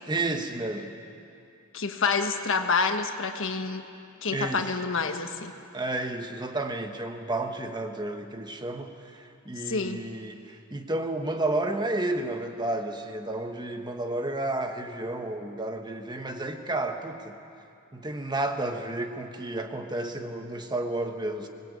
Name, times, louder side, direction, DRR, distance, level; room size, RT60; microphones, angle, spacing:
voice 1, 0.1-0.9 4.3-4.7 5.7-17.4 17.9-21.5, right 2 dB, 20° right, 5 dB, 1.3 m, -31 dB
voice 2, 1.7-3.8 4.2-5.5 9.7-10.0, left 4 dB, 60° left, 6 dB, 1.4 m, -28 dB
25.5 x 19.5 x 8.5 m, 2.6 s
head